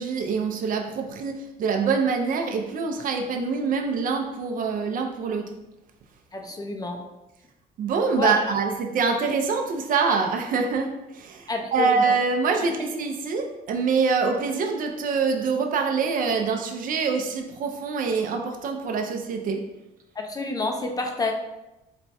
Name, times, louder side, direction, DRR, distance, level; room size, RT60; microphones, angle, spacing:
voice 1, 0.0-5.5 7.8-19.7, right 5 dB, 55° right, 3 dB, 0.6 m, -25 dB
voice 2, 6.3-7.0 8.1-8.3 11.5-12.1 20.2-21.3, left 3 dB, 20° left, 3 dB, 0.5 m, -28 dB
4.3 x 2.3 x 4.1 m, 0.96 s
cardioid pair, 110°, 17 cm